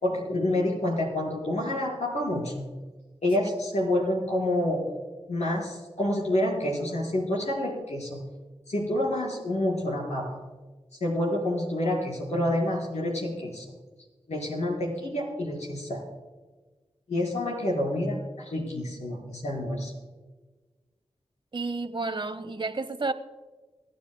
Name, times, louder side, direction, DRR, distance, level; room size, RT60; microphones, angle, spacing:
voice 1, 0.0-2.7 3.2-4.8 5.3-8.2 8.7-10.4 11.0-13.6 14.3-16.0 17.1-19.9, left 1 dB, 80° left, 4.4 m, -28 dB
voice 2, 21.5-23.1, right 3 dB, 45° right, 0.9 m, -31 dB
25.5 x 9.7 x 2.2 m
cardioid pair, 45°, 11 cm